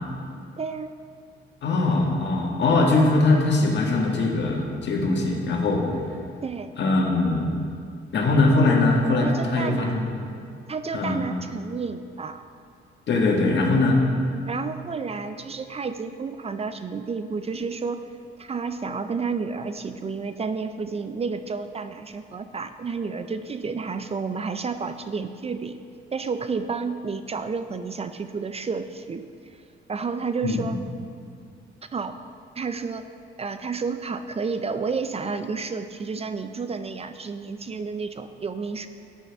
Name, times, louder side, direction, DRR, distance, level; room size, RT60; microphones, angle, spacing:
voice 1, 0.6-0.9 6.4-6.7 9.2-10.0 10.7-12.4 14.5-18.0 18.4-25.8 26.1-29.2 29.9-30.8 31.9-32.1 32.6-33.0 33.4-38.9, right 5 dB, 30° right, 9 dB, 0.5 m, -31 dB
voice 2, 1.6-5.8 6.8-7.5 8.1-10.0 10.9-11.2 13.1-14.0 30.4-30.6, left 2 dB, 65° left, 0 dB, 1.8 m, -21 dB
12.0 x 9.0 x 3.5 m, 2.3 s
cardioid pair, 90°, 20 cm